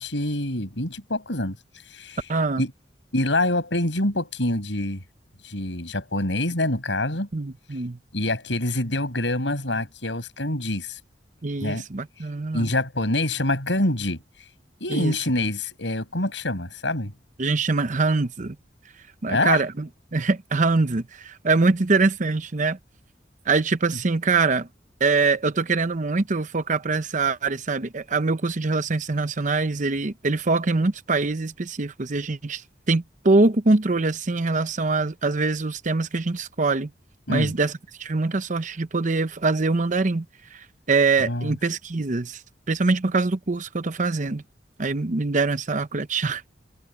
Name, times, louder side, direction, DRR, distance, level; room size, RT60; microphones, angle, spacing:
voice 1, 0.0-1.6 1.9-2.2 2.6-2.7 3.1-5.0 5.4-7.3 8.1-11.0 11.6-11.8 12.5-14.2 14.8-17.1 19.3-19.6 37.3-37.5 41.2-41.6, left 1 dB, 80° left, 7.2 m, -25 dB
voice 2, 2.3-2.6 7.3-8.0 11.4-12.7 14.9-15.1 17.4-18.6 19.2-22.8 23.5-24.7 25.0-32.6 32.9-36.9 37.3-37.7 38.0-40.3 40.9-42.4 42.7-44.4 44.8-46.4, right 3 dB, 45° right, 0.8 m, -23 dB
head